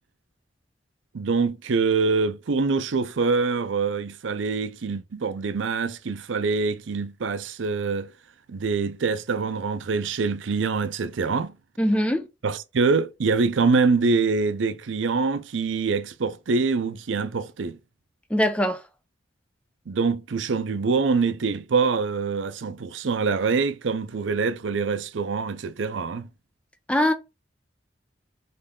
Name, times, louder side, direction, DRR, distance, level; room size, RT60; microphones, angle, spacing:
voice 1, 1.1-8.1 8.5-11.6 12.4-17.8 19.9-26.3, right 4 dB, 90° right, 0.5 m, -25 dB
voice 2, 11.8-12.3 18.3-18.8 26.9-27.1, equal, 5° left, 0.5 m, -21 dB
3.9 x 3.2 x 3.6 m
head